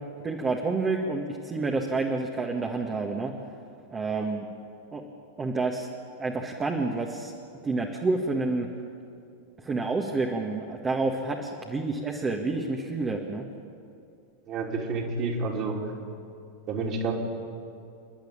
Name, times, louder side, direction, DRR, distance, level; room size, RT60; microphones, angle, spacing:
voice 1, 0.2-3.3 3.9-4.5 4.9-5.0 5.4-5.9 6.2-7.3 7.6-8.7 9.6-13.5, right 3 dB, 20° right, 1 dB, 1.8 m, -29 dB
voice 2, 14.5-15.8 16.7-17.1, right 3 dB, 35° right, -2 dB, 3.4 m, -30 dB
28.5 x 11.5 x 8.8 m, 2.5 s
figure-of-eight pair, 90°, 0 cm